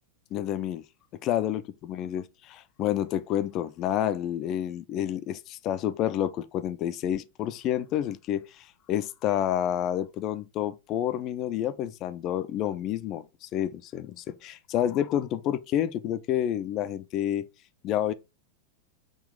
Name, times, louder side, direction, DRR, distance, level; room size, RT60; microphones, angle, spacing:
voice 1, 0.3-0.8 1.2-17.5 17.8-18.1, left 11 dB, 35° left, 0.3 m, -29 dB
3.8 x 2.4 x 3.4 m
figure-of-eight pair, 90°, 0 cm